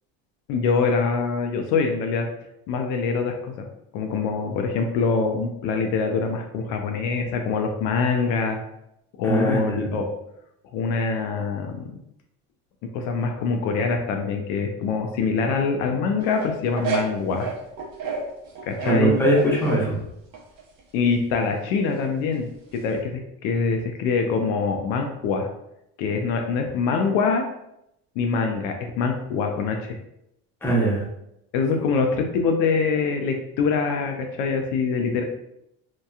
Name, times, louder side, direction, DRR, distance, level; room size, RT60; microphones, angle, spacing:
voice 1, 0.5-2.3 2.7-3.5 3.9-8.6 9.2-10.1 10.7-11.8 12.9-17.5 18.6-19.2 20.9-25.5 26.0-27.4 28.2-30.0 31.5-35.2, left 5 dB, 70° left, 4 dB, 0.5 m, -24 dB
voice 2, 9.2-10.0 18.8-19.9 30.6-31.0, right 1 dB, 5° left, -5 dB, 0.8 m, -21 dB
sound 1, 16.2-18.3 18.5-19.8 20.3-20.8 22.8-22.9, right 5 dB, 60° right, 0.7 m, -30 dB
2.8 x 2.2 x 2.3 m, 0.81 s
supercardioid pair, 115°, 32 cm